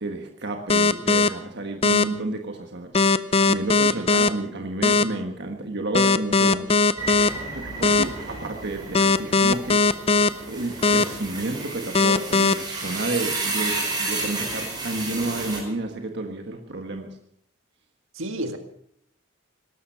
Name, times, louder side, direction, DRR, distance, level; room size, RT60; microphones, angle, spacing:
voice 1, 0.0-6.7 7.5-9.8 10.5-17.1, right 2 dB, 55° right, 4 dB, 1.5 m, -31 dB
sound 1, 0.7-1.3 1.8-2.0 2.9-4.3 4.8-5.0 5.9-7.3 7.8-8.0 8.9-10.3 10.8-11.0 11.9-12.5, left 3 dB, 30° left, 0.5 m, -18 dB
sound 2, 7.0-15.6, right 3 dB, 20° right, 4.7 m, -32 dB
voice 2, 18.1-18.6, right 1 dB, 75° right, 6 dB, 1.8 m, -33 dB
18.5 x 13.0 x 5.7 m, 0.73 s
head